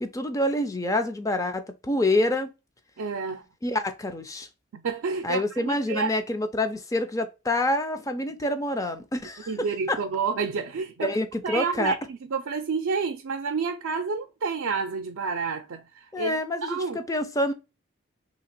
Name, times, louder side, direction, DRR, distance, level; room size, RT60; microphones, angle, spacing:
voice 1, 0.0-2.5 3.6-4.5 5.2-9.5 9.9-10.0 11.0-11.9 16.1-17.5, left 1 dB, 15° left, 0.4 m, -27 dB
voice 2, 3.0-3.4 4.7-6.1 9.5-11.2 11.4-17.0, right 5 dB, 80° right, 0.4 m, -29 dB
3.2 x 2.9 x 4.2 m
head